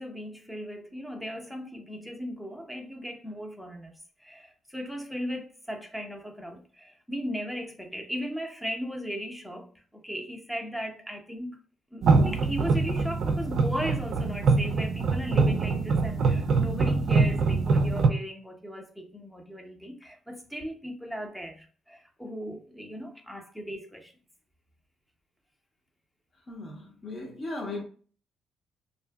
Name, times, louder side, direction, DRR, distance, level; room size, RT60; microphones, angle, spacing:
voice 1, 0.0-3.9 4.2-11.6 11.9-24.1, equal, ahead, 0.6 m, -37 dB
sound 1, 12.0-18.1, right 4 dB, 65° right, 0.4 m, -24 dB
voice 2, 26.5-27.8, left 2 dB, 40° left, 0.8 m, -37 dB
2.6 x 2.5 x 2.2 m
cardioid pair, 90°, 0 cm